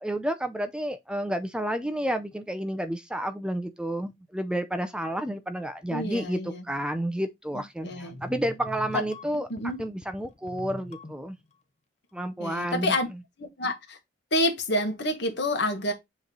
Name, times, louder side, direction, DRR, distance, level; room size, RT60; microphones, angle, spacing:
voice 1, 0.0-9.5 9.8-11.4 12.1-12.9, right 1 dB, 5° right, 0.5 m, -30 dB
voice 2, 5.9-6.6 7.5-8.2 9.5-9.8 12.4-13.1 13.4-14.0 14.3-15.9, left 1 dB, 65° left, 1.7 m, -28 dB
sound 1, 8.1-11.5, left 1 dB, 35° left, 0.9 m, -43 dB
7.7 x 3.2 x 3.9 m
head